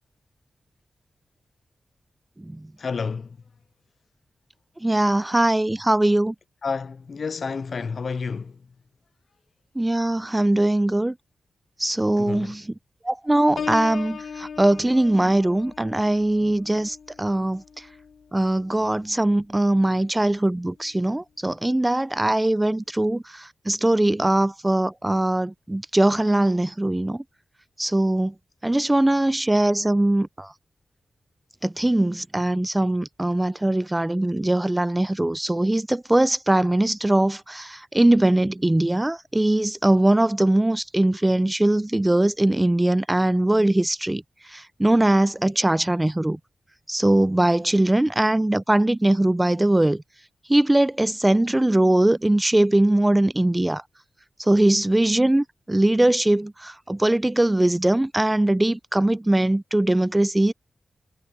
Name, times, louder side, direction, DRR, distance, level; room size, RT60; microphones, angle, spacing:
voice 1, 2.8-3.4 6.6-8.6 12.2-12.6, left 5 dB, 60° left, 0.4 m, -30 dB
voice 2, 4.8-6.4 9.8-11.2 11.8-12.7 13.0-17.6 18.3-27.2 27.8-28.3 28.6-30.5 31.6-44.2 44.5-46.4 46.9-50.0 50.5-53.8 54.4-60.5, right 1 dB, 15° right, 0.6 m, -21 dB
Piano, 13.6-19.2 19.7-20.0, left 6 dB, 80° left, 1.1 m, -38 dB
wide cardioid pair, 115°, 0 cm